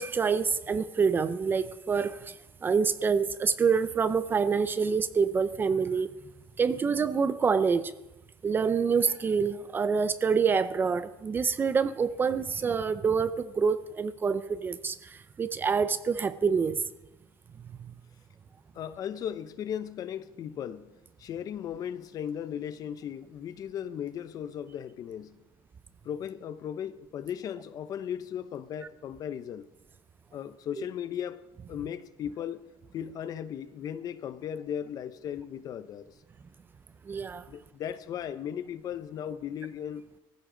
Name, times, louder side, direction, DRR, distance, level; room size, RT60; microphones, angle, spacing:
voice 1, 0.0-6.1 6.6-7.9 8.4-16.8 17.8-17.9 37.0-37.5, right 5 dB, 20° right, 0.5 m, -27 dB
voice 2, 18.7-25.4 26.0-29.7 30.3-31.4 31.7-32.7 32.9-36.1 37.5-40.0, left 9 dB, 40° left, 0.7 m, -37 dB
18.5 x 15.0 x 3.8 m
cardioid pair, 160°, 10 cm